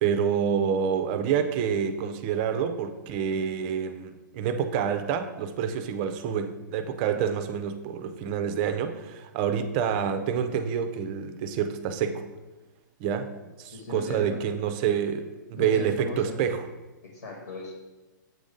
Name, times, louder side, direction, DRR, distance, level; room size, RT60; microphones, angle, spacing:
voice 1, 0.0-12.3 13.0-13.3 13.6-16.7, right 7 dB, 25° right, 8 dB, 0.4 m, -27 dB
voice 2, 13.7-14.4 15.5-16.4 17.0-17.8, left 2 dB, 60° left, 1 dB, 1.3 m, -38 dB
7.8 x 2.6 x 5.0 m, 1.1 s
hypercardioid pair, 160°, 11 cm